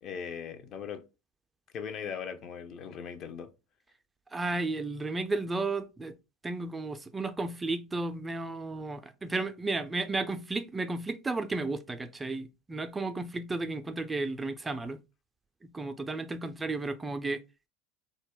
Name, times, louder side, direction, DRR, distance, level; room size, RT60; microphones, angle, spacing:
voice 1, 0.0-1.0 1.7-3.5, left 7 dB, 45° left, 0.5 m, -39 dB
voice 2, 4.3-6.1 6.4-15.0 15.6-17.4, right 3 dB, 15° right, 0.4 m, -33 dB
2.2 x 2.1 x 3.5 m
hypercardioid pair, 75°, 0 cm